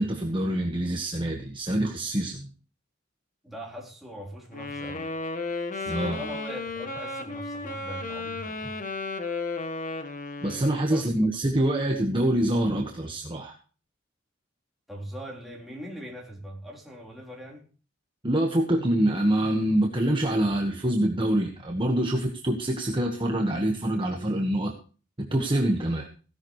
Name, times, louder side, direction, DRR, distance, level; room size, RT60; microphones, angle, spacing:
voice 1, 0.0-2.5 5.8-6.2 10.4-13.5 18.2-24.7 25.2-26.1, right 1 dB, 25° right, 1 dB, 1.4 m, -25 dB
voice 2, 3.4-5.1 5.7-8.7 10.9-11.3 14.9-17.7, equal, ahead, -3 dB, 3.9 m, -41 dB
Wind instrument woodwind instrument, 4.5-11.0, left 3 dB, 40° left, 1.5 m, -34 dB
16.5 x 11.5 x 3.2 m, 0.37 s
head